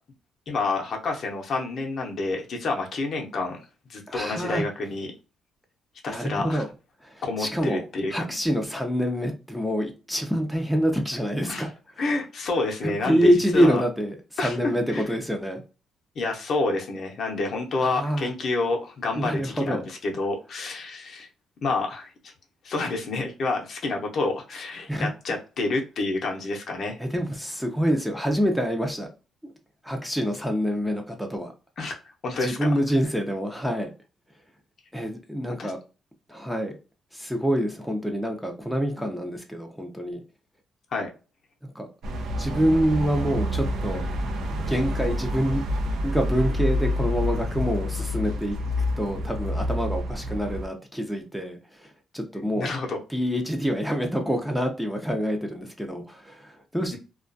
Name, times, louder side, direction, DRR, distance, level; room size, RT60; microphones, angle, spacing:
voice 1, 0.5-3.6 3.9-5.1 6.0-6.6 7.2-8.1 8.4-8.5 11.5-11.6 12.0-13.8 14.4-14.6 14.9-15.1 16.2-21.3 21.6-22.3 22.6-27.0 31.8-32.0 32.2-32.7 35.6-35.7 40.9-41.1 52.6-53.0, left 3 dB, 60° left, 0.6 m, -28 dB
voice 2, 4.1-4.6 6.1-6.7 7.0-7.8 8.1-11.7 12.8-15.6 17.8-18.3 19.2-19.8 24.9-25.1 27.0-29.1 29.8-31.5 32.4-33.9 34.9-35.8 36.3-36.8 37.1-40.2 41.6-41.9 42.4-44.0 44.7-45.6 46.0-48.6 49.0-52.7 53.1-57.0, equal, ahead, 0.5 m, -26 dB
sound 1, 42.0-50.7, left 1 dB, 80° right, 0.5 m, -28 dB
2.3 x 2.2 x 2.5 m
cardioid pair, 90°, 0 cm